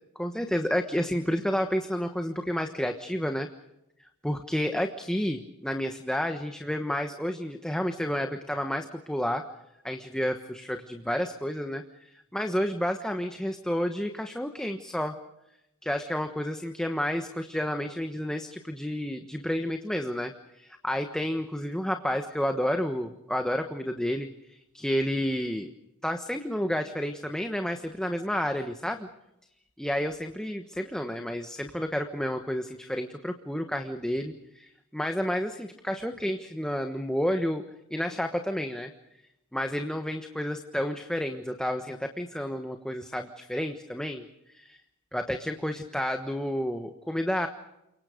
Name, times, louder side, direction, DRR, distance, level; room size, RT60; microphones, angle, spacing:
voice 1, 0.2-3.5 4.2-9.4 9.8-15.2 15.8-25.7 26.0-29.1 29.8-37.6 37.9-38.9 39.5-44.3 44.5-44.8 45.1-47.5, equal, 5° left, 5 dB, 1.2 m, -30 dB
29.5 x 24.5 x 5.2 m, 0.86 s
head